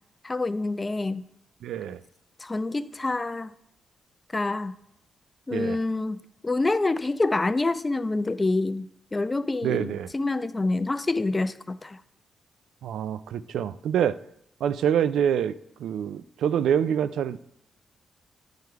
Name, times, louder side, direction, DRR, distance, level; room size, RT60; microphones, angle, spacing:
voice 1, 0.2-1.3 2.4-3.5 4.3-4.7 5.5-12.0, left 2 dB, 25° left, 14 dB, 0.4 m, -27 dB
voice 2, 1.6-2.0 5.5-5.8 9.6-10.1 12.8-14.2 14.6-15.5 15.8-17.4, right 9 dB, 85° right, 15 dB, 0.3 m, -26 dB
9.4 x 4.8 x 4.5 m, 0.76 s
cardioid pair, 85°, 0 cm